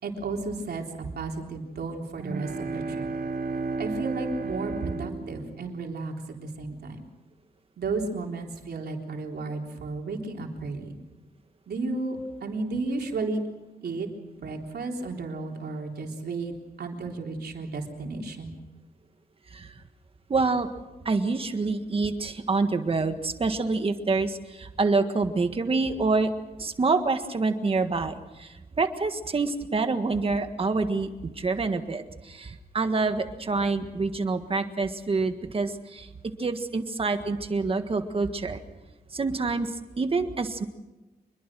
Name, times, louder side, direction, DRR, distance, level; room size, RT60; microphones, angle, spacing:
voice 1, 0.0-0.8 1.1-3.1 3.8-7.0 7.8-11.0 11.7-13.4 13.8-14.1 14.4-16.5 16.8-18.5, right 3 dB, 90° right, 1 dB, 3.7 m, -33 dB
sound 1, 2.1-6.2, right 3 dB, 70° right, 2.9 m, -33 dB
voice 2, 20.3-20.7 21.0-26.3 26.6-36.1 36.4-38.6 39.1-40.6, right 3 dB, 35° right, 7 dB, 1.6 m, -27 dB
26.0 x 22.0 x 6.2 m, 1.1 s
wide cardioid pair, 175°, 16 cm